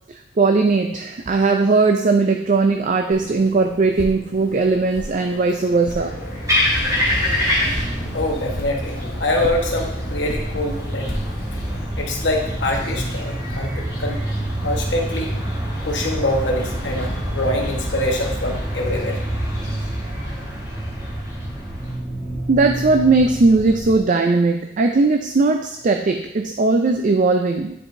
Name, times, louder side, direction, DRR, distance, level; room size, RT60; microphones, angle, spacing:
voice 1, 0.1-6.2 20.2-20.3 22.5-27.7, right 3 dB, 45° right, 4 dB, 0.4 m, -18 dB
sound 1, 3.1-11.8, left 1 dB, 50° left, 0.8 m, -36 dB
sound 2, 5.9-22.0, equal, 20° right, 1.5 m, -27 dB
sound 3, 7.1-24.0, right 1 dB, ahead, 1.4 m, -31 dB
voice 2, 8.1-11.2 12.0-14.2 14.6-15.6 15.8-19.2 19.6-19.7, left 1 dB, 70° left, 0 dB, 1.2 m, -25 dB
9.7 x 4.7 x 2.7 m, 0.79 s
head